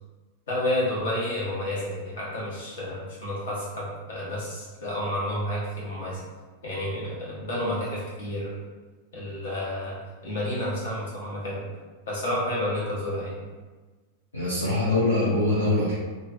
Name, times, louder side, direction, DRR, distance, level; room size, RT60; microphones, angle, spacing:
voice 1, 0.5-6.2 6.6-8.5 9.1-9.9 10.2-11.6 12.1-13.3, left 1 dB, 60° left, -6 dB, 1.1 m, -30 dB
voice 2, 14.3-15.9, left 2 dB, 75° left, -7 dB, 0.5 m, -23 dB
2.9 x 2.4 x 2.5 m, 1.3 s
figure-of-eight pair, 90°, 0 cm